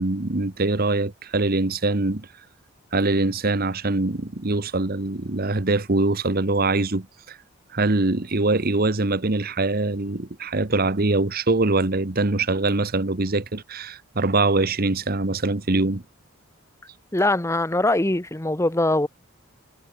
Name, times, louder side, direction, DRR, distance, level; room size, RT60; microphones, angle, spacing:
voice 1, 0.0-2.3 2.9-7.4 7.7-16.0, right 2 dB, 45° right, 1.2 m, -23 dB
voice 2, 17.1-19.1, left 2 dB, 15° left, 0.9 m, -22 dB
head